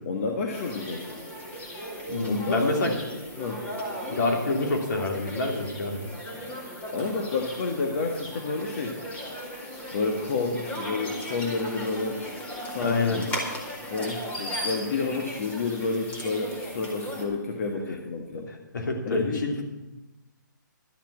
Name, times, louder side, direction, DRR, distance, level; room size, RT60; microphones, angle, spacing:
voice 1, 0.0-1.2 2.2-3.0 3.4-3.7 6.9-9.0 9.9-12.2 12.6-13.3 13.9-18.5 19.1-19.4, left 3 dB, 45° left, 2 dB, 1.5 m, -30 dB
sound 1, 0.5-17.3, equal, 15° left, 1.9 m, -37 dB
voice 2, 2.1-3.0 4.1-6.0 12.8-13.2 18.5-19.6, left 2 dB, 70° left, 2 dB, 2.9 m, -27 dB
12.0 x 7.3 x 8.4 m, 1.1 s
hypercardioid pair, 155°, 11 cm